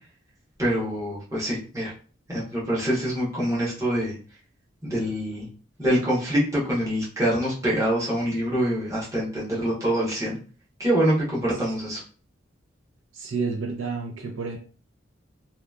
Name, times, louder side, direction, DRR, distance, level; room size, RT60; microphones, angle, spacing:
voice 1, 0.6-1.9 2.3-4.2 4.8-5.5 5.8-10.4 10.8-12.0, equal, 15° right, -7 dB, 0.9 m, -25 dB
voice 2, 13.1-14.6, right 4 dB, 70° right, 2 dB, 0.5 m, -30 dB
2.8 x 2.3 x 2.3 m, 0.39 s
head